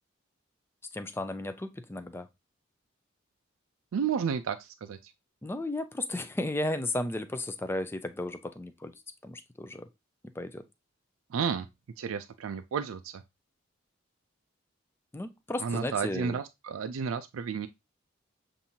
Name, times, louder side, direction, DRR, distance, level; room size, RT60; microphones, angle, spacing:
voice 1, 0.9-2.3 5.4-8.9 9.2-9.9 10.2-10.6 15.1-16.4, left 1 dB, 10° left, 0.4 m, -34 dB
voice 2, 3.9-5.1 11.3-11.7 12.0-13.2 15.6-17.7, right 6 dB, 85° right, 0.4 m, -32 dB
7.1 x 2.6 x 2.7 m
head